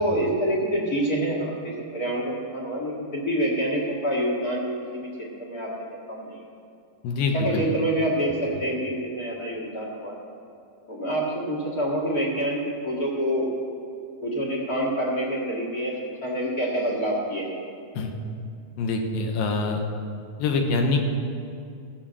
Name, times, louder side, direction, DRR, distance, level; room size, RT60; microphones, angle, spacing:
voice 1, 0.0-4.7 4.9-5.7 6.1-6.4 7.3-10.2 10.9-13.5 14.2-15.9 16.2-17.5, right 1 dB, 35° left, -4 dB, 1.5 m, -27 dB
voice 2, 7.0-7.6 17.9-18.1 18.8-19.8 20.4-21.2, left 3 dB, 80° left, 4 dB, 2.7 m, -25 dB
15.0 x 6.5 x 7.6 m, 2.5 s
omnidirectional pair, 4.2 m